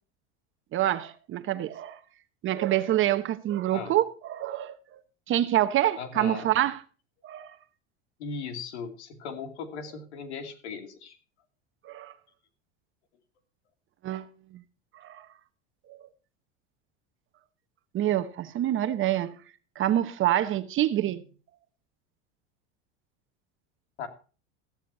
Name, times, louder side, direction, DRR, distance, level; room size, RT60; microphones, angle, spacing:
voice 1, 0.7-2.0 2.4-4.8 5.3-6.8 7.2-7.5 11.8-12.1 14.0-14.3 15.0-15.3 15.9-16.0 17.9-19.4 19.8-21.2, right 13 dB, 40° right, 1.0 m, -26 dB
voice 2, 6.0-6.5 8.2-11.2 24.0-24.1, left 5 dB, 85° left, 2.6 m, -38 dB
14.5 x 13.0 x 2.7 m
supercardioid pair, 115°, 32 cm